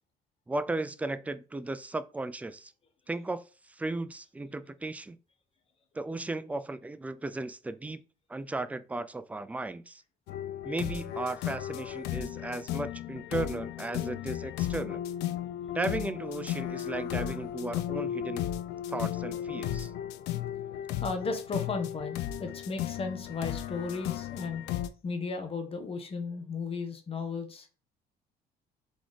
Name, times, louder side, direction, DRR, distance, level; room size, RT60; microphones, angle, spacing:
voice 1, 0.5-2.7 3.1-5.2 5.9-8.0 8.3-10.0 10.6-15.0 15.7-18.4 18.9-19.9, right 2 dB, 10° right, 0.3 m, -35 dB
sound 1, 10.3-24.9, left 12 dB, 85° left, 0.4 m, -35 dB
voice 2, 20.7-24.6 25.0-27.7, left 4 dB, 35° left, 1.0 m, -35 dB
4.2 x 3.6 x 3.2 m
cardioid pair, 110°, 17 cm